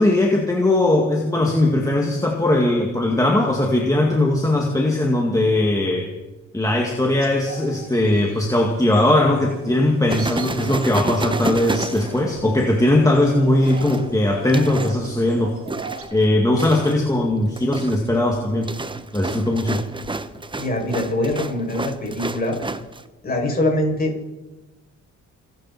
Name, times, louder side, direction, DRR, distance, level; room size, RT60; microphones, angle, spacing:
voice 1, 0.0-6.1 6.5-15.6 16.1-18.7 19.1-19.8, left 1 dB, 10° left, 0 dB, 2.2 m, -19 dB
sound 1, 6.9-16.0, right 4 dB, 50° right, 3.1 m, -40 dB
sound 2, 10.1-12.7 13.6-15.0 15.7-16.2 16.6-17.0 17.4-23.0, right 3 dB, 15° right, 0.9 m, -30 dB
voice 2, 20.6-22.6 23.2-24.3, left 1 dB, 30° left, 0 dB, 6.7 m, -23 dB
30.0 x 11.0 x 4.3 m, 1.1 s
cardioid pair, 90°, 30 cm